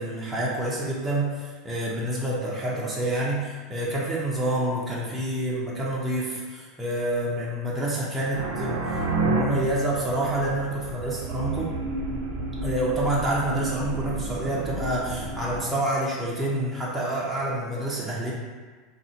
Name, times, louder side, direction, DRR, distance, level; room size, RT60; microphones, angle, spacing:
voice 1, 0.0-11.7 12.6-18.3, right 1 dB, 5° right, -7 dB, 0.5 m, -28 dB
sound 1, 8.3-15.6, right 3 dB, 80° right, 0.5 m, -30 dB
2.6 x 2.1 x 3.8 m, 1.4 s
supercardioid pair, 135°, 0 cm